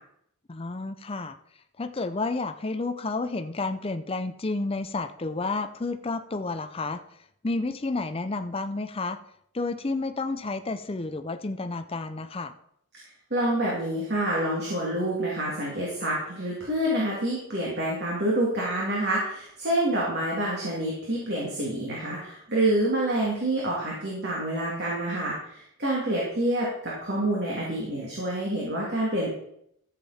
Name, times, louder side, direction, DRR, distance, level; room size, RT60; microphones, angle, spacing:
voice 1, 0.5-1.4 1.8-7.0 7.4-9.2 9.5-12.5, left 3 dB, 25° left, 8 dB, 0.5 m, -30 dB
voice 2, 13.3-29.3, right 1 dB, 50° right, -4 dB, 2.8 m, -27 dB
13.5 x 7.5 x 4.3 m, 0.71 s
head